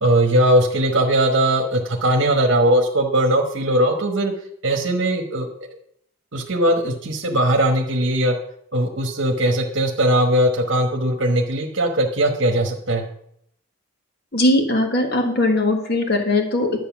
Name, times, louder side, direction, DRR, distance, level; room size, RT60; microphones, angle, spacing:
voice 1, 0.0-4.3 4.6-5.5 6.3-8.4 8.7-13.0, right 1 dB, 60° right, 2 dB, 1.3 m, -19 dB
voice 2, 14.3-16.8, left 2 dB, 50° left, 3 dB, 1.7 m, -19 dB
11.0 x 7.9 x 6.1 m, 0.71 s
head